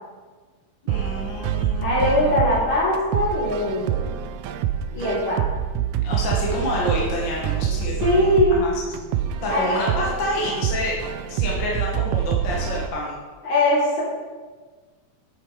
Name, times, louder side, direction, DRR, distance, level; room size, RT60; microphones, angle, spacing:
voice 1, 0.8-2.3 6.0-8.0 8.5-8.7 9.4-11.0 11.3-13.2, left 1 dB, 45° left, -3 dB, 2.3 m, -28 dB
sound 1, 0.9-12.9, right 9 dB, 85° right, 2.0 m, -26 dB
voice 2, 1.8-4.1 4.9-5.4 8.0-8.6 9.5-9.8 13.4-14.0, left 1 dB, 70° left, -12 dB, 5.0 m, -21 dB
11.0 x 8.6 x 4.9 m, 1.4 s
omnidirectional pair, 3.4 m